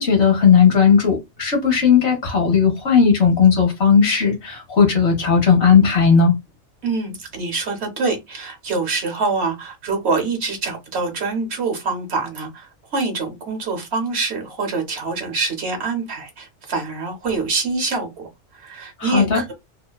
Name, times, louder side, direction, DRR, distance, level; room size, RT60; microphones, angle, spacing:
voice 1, 0.0-6.3 19.0-19.4, left 6 dB, 60° left, 1.1 m, -16 dB
voice 2, 6.8-19.5, right 4 dB, 60° right, 1.0 m, -25 dB
2.9 x 2.1 x 2.2 m
omnidirectional pair, 1.3 m